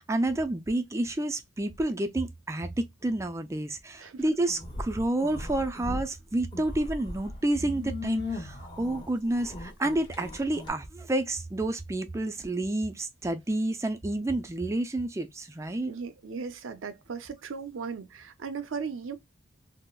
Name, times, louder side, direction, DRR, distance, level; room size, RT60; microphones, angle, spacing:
voice 1, 0.0-15.9, right 1 dB, 15° right, 0.3 m, -29 dB
sound 1, 4.5-6.1 6.4-10.7, left 2 dB, 20° left, 0.7 m, -38 dB
voice 2, 15.8-19.2, right 5 dB, 90° right, 0.5 m, -37 dB
3.6 x 2.0 x 2.3 m
head